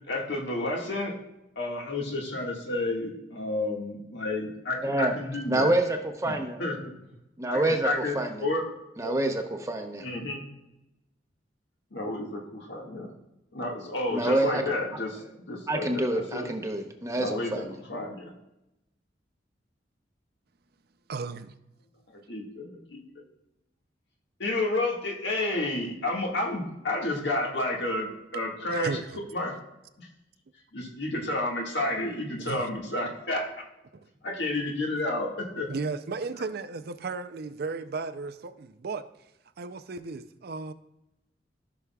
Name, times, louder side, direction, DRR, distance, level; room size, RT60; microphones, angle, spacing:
voice 1, 0.1-1.2 1.6-5.8 6.2-6.3 6.6-6.9 7.5-9.1 10.0-10.4 11.9-13.1 13.5-15.2 15.5-16.5 17.1-17.6 17.9-18.3 22.1-23.0 24.4-29.5 30.0-30.1 30.7-33.5 34.2-35.7, left 2 dB, 70° left, 1.8 m, -31 dB
voice 2, 4.8-5.1 5.5-6.6 7.4-7.9 8.1-8.4 9.0-10.1 14.1-14.6 15.7-17.8, right 1 dB, 15° right, 0.8 m, -27 dB
voice 3, 21.1-21.5 28.7-29.2 32.4-32.7 35.7-39.0 39.6-40.7, right 4 dB, 60° right, 0.5 m, -35 dB
14.0 x 6.1 x 2.3 m
head